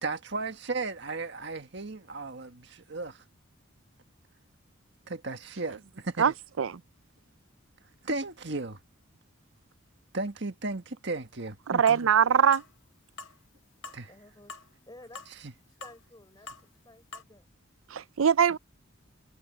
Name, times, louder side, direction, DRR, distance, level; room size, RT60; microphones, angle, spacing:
voice 1, 0.0-3.2 5.1-6.3 8.0-8.8 10.1-12.1 13.9-14.1 15.4-15.5, right 3 dB, 60° right, 1.6 m, -35 dB
voice 2, 11.7-12.6 17.9-18.6, right 7 dB, 90° right, 0.5 m, -22 dB
sound 1, 11.9-12.0 12.5-12.7 13.2-13.4 13.8-14.0 14.5-14.7 15.1-15.3 15.8-16.0 16.5-16.6 17.1-17.2, left 4 dB, 80° left, 1.5 m, -43 dB
voice 3, 13.8-14.5 14.9-15.3 15.8-17.4, left 1 dB, 20° left, 4.9 m, -53 dB
head